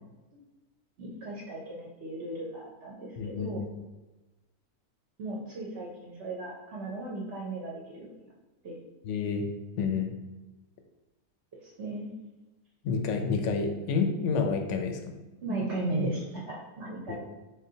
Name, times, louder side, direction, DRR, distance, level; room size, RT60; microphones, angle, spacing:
voice 1, 1.0-3.6 5.2-8.1 8.6-8.8 11.6-12.1 15.4-17.2, right 2 dB, 60° right, -3 dB, 0.8 m, -36 dB
voice 2, 3.2-3.7 9.0-9.4 9.8-10.1 12.8-15.1 17.1-17.2, left 5 dB, 65° left, 4 dB, 0.8 m, -29 dB
3.9 x 3.6 x 2.7 m, 1.1 s
omnidirectional pair, 1.5 m